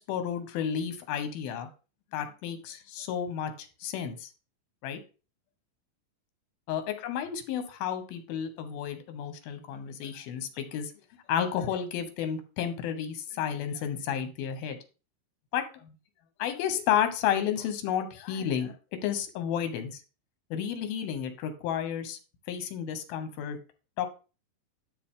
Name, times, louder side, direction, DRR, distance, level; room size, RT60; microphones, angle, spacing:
voice 1, 0.1-1.7 2.1-4.3 4.8-5.0 6.7-10.9 11.3-14.8 15.5-15.6 16.4-20.0 20.5-22.2 22.5-23.6 24.0-24.1, left 9 dB, 85° left, 9 dB, 2.9 m, -31 dB
11.5 x 4.4 x 3.7 m, 0.33 s
omnidirectional pair, 4.2 m